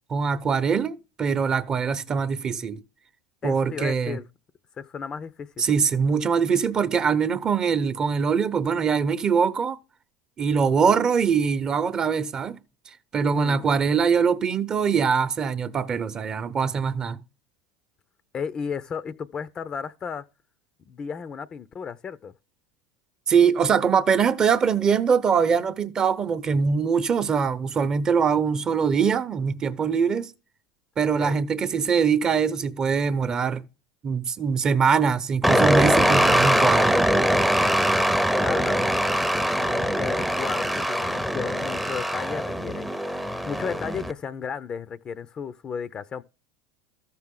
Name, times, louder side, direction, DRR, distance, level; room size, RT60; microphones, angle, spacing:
voice 1, 0.1-2.8 3.4-4.2 5.6-9.8 10.4-12.6 13.1-17.2 23.3-30.3 31.0-33.6 34.0-37.0, right 6 dB, 30° right, 0.9 m, -23 dB
voice 2, 3.4-4.3 4.8-5.7 13.2-13.7 18.3-20.2 20.8-22.3 31.2-31.4 38.4-39.1 39.6-43.2 43.5-46.2, left 6 dB, 35° left, 0.6 m, -34 dB
sound 1, 35.4-44.1, equal, ahead, 0.7 m, -22 dB
13.0 x 6.0 x 3.8 m
supercardioid pair, 100°, 2 cm